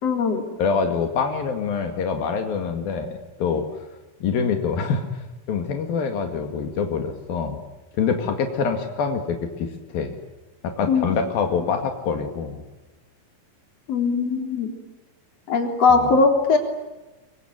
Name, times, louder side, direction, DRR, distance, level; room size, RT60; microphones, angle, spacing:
voice 1, 0.0-0.4 10.9-11.2 13.9-14.7 15.5-16.6, left 4 dB, 45° left, 4 dB, 4.6 m, -20 dB
voice 2, 0.6-3.7 4.2-7.6 8.0-10.2 10.6-12.6 15.9-16.1, left 5 dB, 85° left, 5 dB, 4.0 m, -25 dB
24.5 x 24.0 x 9.3 m, 1.1 s
omnidirectional pair, 4.1 m